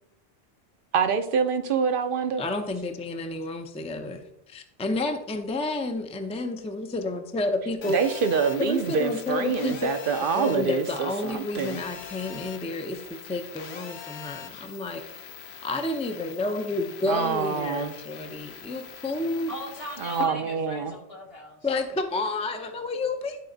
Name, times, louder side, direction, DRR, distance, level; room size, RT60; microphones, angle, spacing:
voice 1, 0.9-2.4 7.9-11.8 17.1-17.9 20.0-20.9, right 6 dB, 60° right, 9 dB, 0.8 m, -26 dB
voice 2, 2.4-8.0 8.6-9.9 10.3-15.0 15.6-19.5 21.6-23.4, left 2 dB, 10° left, 6 dB, 0.5 m, -30 dB
Telephone, 7.8-20.2, left 7 dB, 90° left, 1.0 m, -42 dB
voice 3, 19.5-21.7, equal, 70° left, -1 dB, 2.0 m, -39 dB
11.5 x 4.3 x 3.9 m, 0.80 s
omnidirectional pair, 1.0 m